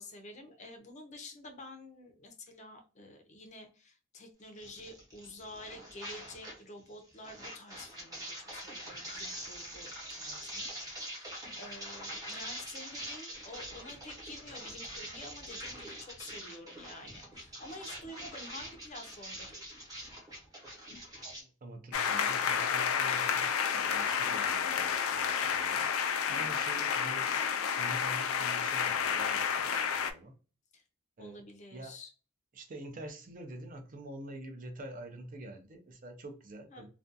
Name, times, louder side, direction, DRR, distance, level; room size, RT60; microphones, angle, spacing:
voice 1, 0.0-19.6 24.5-24.8 26.3-26.7 30.7-30.8 31.2-32.1 36.7-36.9, left 1 dB, 35° left, 0.5 m, -49 dB
sound 1, 4.6-6.6 6.9-21.4, equal, 20° right, 0.9 m, -44 dB
voice 2, 21.3-25.9 26.3-27.3 27.8-30.3 31.2-31.4 31.7-31.9 32.5-36.9, right 1 dB, 40° right, 0.5 m, -46 dB
sound 2, 21.9-30.1, left 7 dB, 85° left, 0.3 m, -30 dB
2.4 x 2.2 x 2.5 m
head